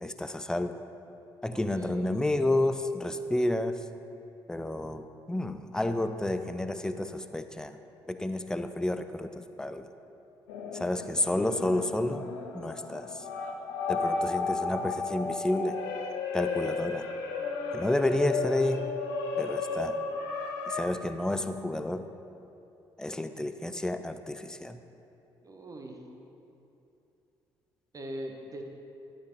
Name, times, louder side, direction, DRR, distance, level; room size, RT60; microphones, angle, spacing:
voice 1, 0.0-0.8 1.4-3.8 4.5-7.8 8.1-9.9 10.7-12.3 12.5-13.1 13.9-15.8 16.3-17.1 17.7-18.9 19.4-20.0 20.7-22.1 23.0-24.8, left 1 dB, 5° left, 9 dB, 0.4 m, -30 dB
voice 2, 1.5-2.2 25.4-26.0 27.9-28.6, right 1 dB, 30° right, 2 dB, 1.0 m, -41 dB
sound 1, 10.5-20.8, left 4 dB, 65° left, 0.7 m, -33 dB
11.5 x 5.0 x 3.1 m, 2.8 s
figure-of-eight pair, 45°, 13 cm